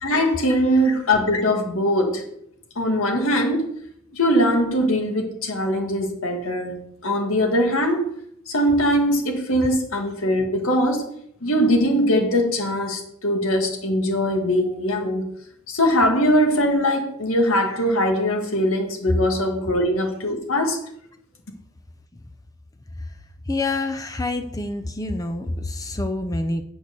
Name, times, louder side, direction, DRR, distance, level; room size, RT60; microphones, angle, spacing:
voice 1, 0.0-2.2 2.8-3.7 4.1-8.1 8.5-11.1 11.4-15.3 15.7-20.8, equal, 80° left, 3 dB, 1.9 m, -21 dB
voice 2, 23.5-26.6, left 2 dB, 15° left, 6 dB, 0.6 m, -27 dB
9.1 x 4.6 x 6.9 m, 0.70 s
head